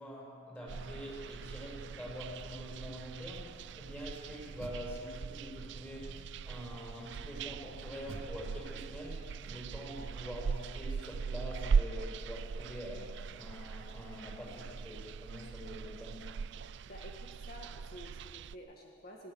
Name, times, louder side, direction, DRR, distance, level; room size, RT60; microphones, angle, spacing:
voice 1, 0.0-16.3, equal, 10° left, -4 dB, 7.3 m, -45 dB
sound 1, 0.7-18.6, right 5 dB, 60° right, 0.4 m, -39 dB
Door, 4.6-5.6 6.1-6.7 8.1-10.0, right 1 dB, 80° right, 1.6 m, -53 dB
voice 2, 16.5-19.3, equal, 50° left, 0 dB, 1.8 m, -51 dB
21.5 x 17.5 x 7.2 m, 2.5 s
head